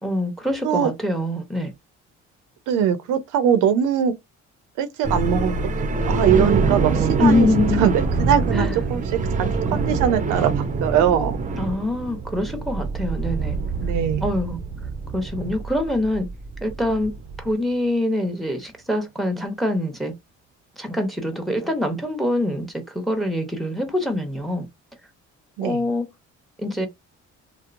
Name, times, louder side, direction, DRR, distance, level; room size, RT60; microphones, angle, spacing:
voice 1, 0.0-1.7 7.2-7.9 8.5-8.8 11.6-13.6 14.2-14.6 15.1-16.3 16.6-20.1 20.8-24.7 25.6-26.1 26.6-26.9, left 1 dB, ahead, 0.8 m, -24 dB
voice 2, 2.7-4.1 4.8-7.5 7.8-11.4 13.8-14.3 25.6-25.8, right 8 dB, 85° right, 0.5 m, -22 dB
sound 1, 5.0-17.5, right 4 dB, 25° right, 0.5 m, -25 dB
2.8 x 2.0 x 2.4 m
cardioid pair, 95°, 30 cm